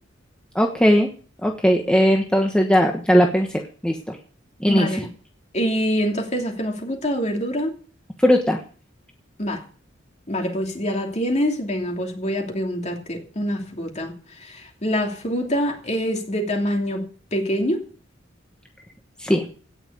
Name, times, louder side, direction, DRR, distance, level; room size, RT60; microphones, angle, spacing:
voice 1, 0.5-1.1 1.4-4.2 4.6-4.9 8.2-8.6 19.2-19.5, equal, 5° left, 1.2 m, -18 dB
voice 2, 4.7-5.1 5.5-7.7 9.4-9.6 10.3-14.1 14.4-17.1 17.3-17.8, equal, 35° left, 2.9 m, -25 dB
17.0 x 6.0 x 8.2 m
head